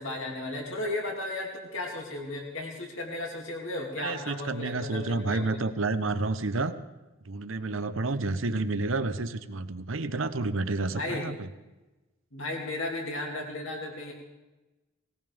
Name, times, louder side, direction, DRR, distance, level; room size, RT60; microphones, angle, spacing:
voice 1, 0.0-5.6 10.9-11.2 12.3-14.1, left 2 dB, 75° left, 0 dB, 2.7 m, -35 dB
voice 2, 4.0-6.7 7.3-11.5, right 3 dB, 75° right, 11 dB, 0.9 m, -30 dB
19.5 x 18.5 x 3.5 m, 1.1 s
head